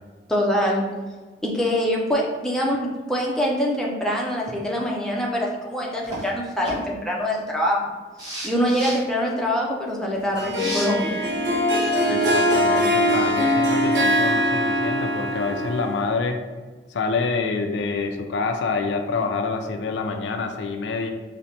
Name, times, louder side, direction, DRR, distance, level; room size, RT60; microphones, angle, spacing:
voice 1, 0.3-0.8 1.4-7.8 8.4-11.2, equal, 5° left, -3 dB, 0.4 m, -24 dB
sound 1, 6.0-6.3 6.6-6.8 8.2-9.0 10.5-10.9, right 1 dB, 20° right, 1.3 m, -32 dB
Harp, 10.4-16.1, equal, 80° right, 0.6 m, -22 dB
voice 2, 12.1-16.4 16.9-21.1, left 4 dB, 90° left, 5 dB, 0.4 m, -27 dB
5.0 x 2.1 x 2.8 m, 1.4 s
head